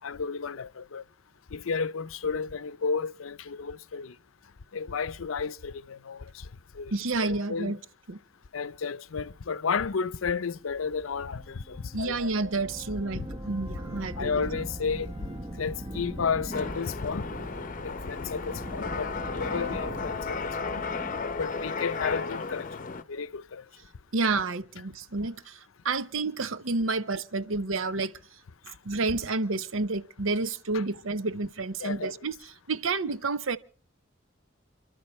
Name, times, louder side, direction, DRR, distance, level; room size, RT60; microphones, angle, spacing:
voice 1, 0.0-1.0 1.5-4.1 4.7-6.5 6.7-6.9 7.2-7.7 8.5-12.5 13.1-13.3 14.2-15.1 15.6-17.3 17.8-20.8 21.4-22.7 23.1-23.6 30.7-30.8 31.8-32.1, left 5 dB, 85° left, 0.6 m, -32 dB
voice 2, 6.9-7.8 8.1-8.2 11.9-14.4 24.1-25.6 25.8-28.1 28.8-32.4 32.7-33.6, right 3 dB, 80° right, 0.9 m, -29 dB
sound 1, 10.7-22.7, equal, 25° right, 1.2 m, -40 dB
sound 2, 16.5-23.0, left 4 dB, 45° left, 0.7 m, -34 dB
29.5 x 12.0 x 3.1 m
head